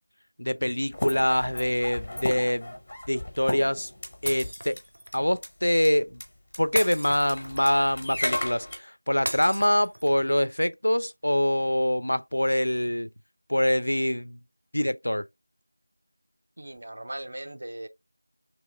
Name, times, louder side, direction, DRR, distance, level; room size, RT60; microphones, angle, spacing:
voice 1, 0.4-2.7 3.1-3.9 4.2-4.8 5.1-6.2 6.6-13.1 13.5-14.4 14.7-15.3, left 1 dB, 80° left, 0.3 m, -25 dB
sound 1, 0.9-4.5 4.8-4.9 5.1-5.5 5.8-5.9 6.1-6.3 6.5-6.6 6.9-8.8, left 1 dB, 15° left, 0.6 m, -34 dB
Shatter, 4.3-5.1 6.7-7.8 9.3-10.3, equal, 70° right, 0.6 m, -35 dB
voice 2, 16.6-17.9, right 1 dB, 30° right, 0.3 m, -38 dB
3.1 x 2.9 x 3.3 m
figure-of-eight pair, 180°, 0 cm